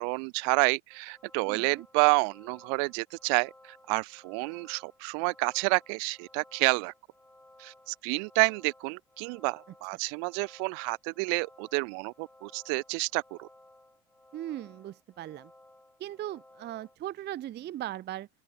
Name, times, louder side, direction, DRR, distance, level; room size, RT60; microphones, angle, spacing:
voice 1, 0.0-6.9 7.6-13.5, right 40 dB or more, 75° right, 1.1 m, -29 dB
sound 1, 0.9-17.0, left 1 dB, 5° left, 4.8 m, -58 dB
voice 2, 1.5-1.8 14.3-15.5 16.0-18.3, right 13 dB, 30° right, 0.5 m, -38 dB
open air
supercardioid pair, 125°, 34 cm